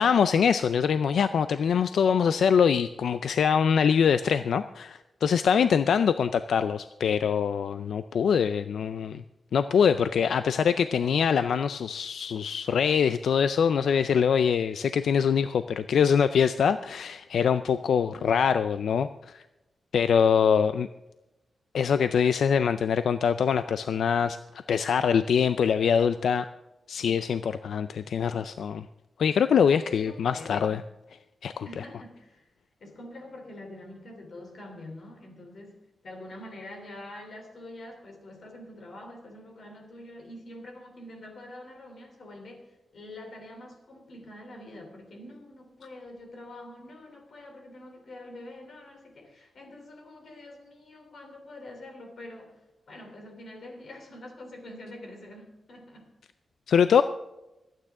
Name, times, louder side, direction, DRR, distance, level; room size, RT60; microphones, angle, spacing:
voice 1, 0.0-9.2 9.5-19.4 19.9-20.9 21.7-24.4 24.7-26.5 26.9-28.8 29.2-30.8 31.4-31.7 56.7-57.0, left 7 dB, 90° left, 11 dB, 0.4 m, -24 dB
voice 2, 29.7-30.8 31.6-32.5 32.8-52.6 52.9-56.1, left 1 dB, 60° left, 3 dB, 3.3 m, -45 dB
25.0 x 9.2 x 3.7 m, 0.98 s
wide cardioid pair, 140°, 0 cm